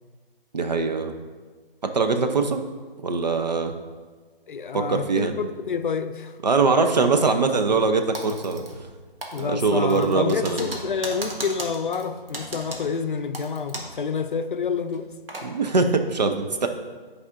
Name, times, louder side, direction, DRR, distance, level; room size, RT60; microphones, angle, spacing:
voice 1, 0.5-1.1 1.9-2.6 3.0-3.7 4.7-5.3 6.4-8.6 9.4-10.7 15.4-16.7, right 4 dB, 45° right, 6 dB, 0.5 m, -22 dB
voice 2, 4.5-6.4 9.3-15.1, left 5 dB, 60° left, 9 dB, 0.5 m, -28 dB
Typing, 8.1-8.9 9.2-14.0 14.3-14.4 14.9-15.5, right 1 dB, 75° right, 1.4 m, -36 dB
9.6 x 4.8 x 2.5 m, 1.4 s
hypercardioid pair, 170°, 29 cm